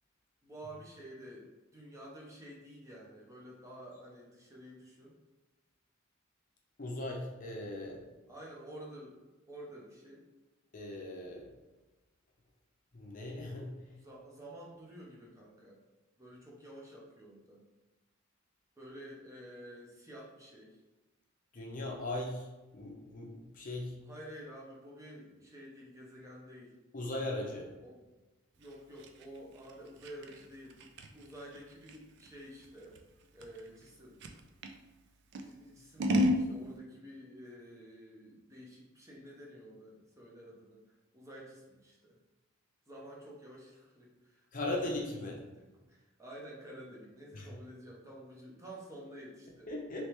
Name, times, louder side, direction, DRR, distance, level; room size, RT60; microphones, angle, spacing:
voice 1, 0.4-5.1 8.3-9.2 9.5-10.2 13.9-15.8 16.2-17.6 18.8-20.8 24.0-26.8 27.8-28.0 28.6-30.8 31.1-33.0 33.3-34.2 35.4-42.2 42.9-45.0 45.6-49.7, right 1 dB, 15° right, -3 dB, 0.7 m, -50 dB
voice 2, 6.8-8.0 10.7-11.5 12.9-13.7 21.5-22.5 22.7-23.9 26.9-27.7 44.5-45.4 47.3-47.5 49.7-50.1, left 1 dB, 40° left, 0 dB, 0.6 m, -38 dB
Scissors, 28.6-34.8 35.3-36.5, left 1 dB, 60° right, 0.4 m, -34 dB
3.3 x 3.2 x 3.0 m, 1.1 s
head